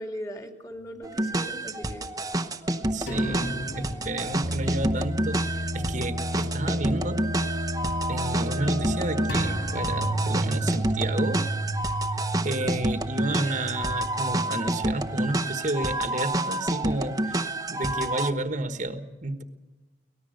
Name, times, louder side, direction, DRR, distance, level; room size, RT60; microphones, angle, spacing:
voice 1, 0.0-2.1 12.3-12.6, equal, 20° left, 5 dB, 2.6 m, -39 dB
sound 1, 1.0-18.3, right 1 dB, 20° right, 1.0 m, -29 dB
voice 2, 2.9-7.2 7.5-7.6 8.1-11.5 12.4-19.4, right 2 dB, 45° right, 8 dB, 1.4 m, -31 dB
sound 2, 3.1-6.2 6.5-6.7 9.3-15.3, right 2 dB, 60° left, 3.4 m, -33 dB
sound 3, 4.4-11.0, left 1 dB, 70° right, 1.4 m, -32 dB
24.0 x 19.0 x 6.6 m, 1.2 s
head